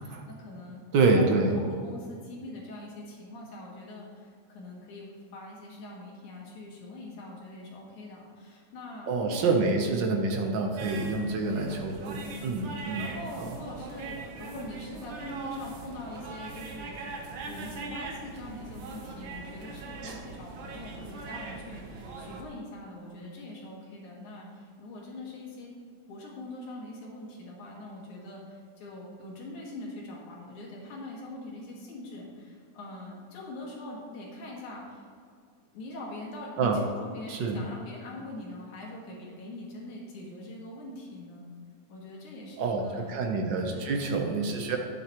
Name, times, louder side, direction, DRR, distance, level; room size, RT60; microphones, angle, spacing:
voice 1, 0.0-0.8 1.2-9.5 11.0-11.8 12.2-12.5 12.7-17.0 17.4-25.7 26.1-35.1 35.7-41.5 41.9-43.1 43.7-44.1 44.5-44.8, left 1 dB, 85° left, -3 dB, 3.3 m, -43 dB
voice 2, 0.9-1.6 9.1-13.1 13.4-13.5 20.0-20.2 36.6-36.8 37.3-37.6 42.6-44.8, right 3 dB, 75° right, 2 dB, 1.0 m, -27 dB
sound 1, 10.8-22.4, right 3 dB, 60° right, 1.4 m, -41 dB
11.5 x 8.8 x 3.0 m, 2.1 s
omnidirectional pair, 3.3 m